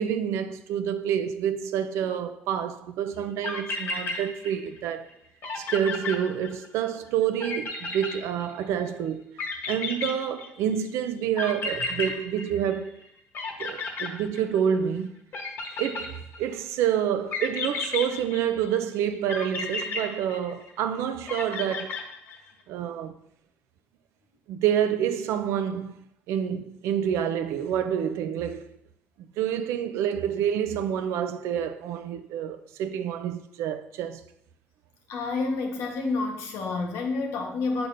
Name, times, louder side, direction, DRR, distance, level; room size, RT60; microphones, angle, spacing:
voice 1, 0.0-5.1 5.6-9.4 9.7-13.0 13.6-15.1 15.8-22.0 22.7-23.2 24.5-28.8 29.4-34.2, right 9 dB, 80° right, 0.4 m, -28 dB
sound 1, 3.2-3.3 3.4-4.8 5.1-5.2 5.4-6.8 7.4-8.8 9.4-10.7 11.4-13.0 13.3-14.8 15.3-16.6 17.3-18.7 19.3-20.8 21.3-22.5, left 4 dB, 50° left, 1.0 m, -33 dB
voice 2, 35.1-37.9, left 3 dB, 75° left, 1.1 m, -29 dB
6.6 x 5.6 x 2.6 m
cardioid pair, 140°, 5 cm